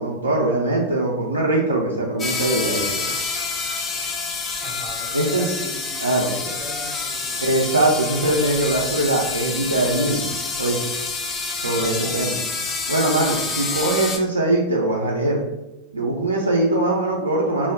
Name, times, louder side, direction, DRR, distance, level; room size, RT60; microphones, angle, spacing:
voice 1, 0.0-3.1 5.1-5.5 6.0-6.3 7.4-10.3 10.6-10.8 11.6-12.4 12.9-15.4 15.9-17.7, right 2 dB, 80° right, -2 dB, 0.3 m, -21 dB
sound 1, 2.2-14.2, left 4 dB, 25° left, 0.3 m, -28 dB
voice 2, 4.6-7.4 11.8-12.2, right 1 dB, 35° right, 0 dB, 0.7 m, -37 dB
2.1 x 2.0 x 3.4 m, 0.96 s
figure-of-eight pair, 90°, 0 cm